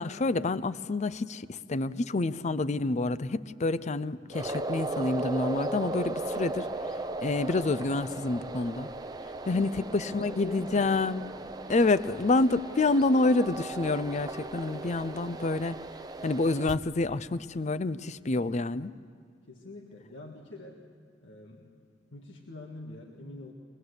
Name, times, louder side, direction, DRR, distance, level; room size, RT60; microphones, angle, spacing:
voice 1, 0.0-6.7 7.2-8.9 9.5-11.3 11.7-15.8 16.2-18.9, left 2 dB, 40° left, 16 dB, 0.5 m, -28 dB
sound 1, 4.3-16.7, right 2 dB, 20° right, 0.7 m, -37 dB
voice 2, 9.4-9.8 10.0-11.0 11.2-11.6 12.8-13.0 19.5-20.8 21.2-21.7 22.1-23.5, left 2 dB, 80° left, -1 dB, 1.8 m, -45 dB
24.0 x 20.0 x 8.0 m, 2.1 s
head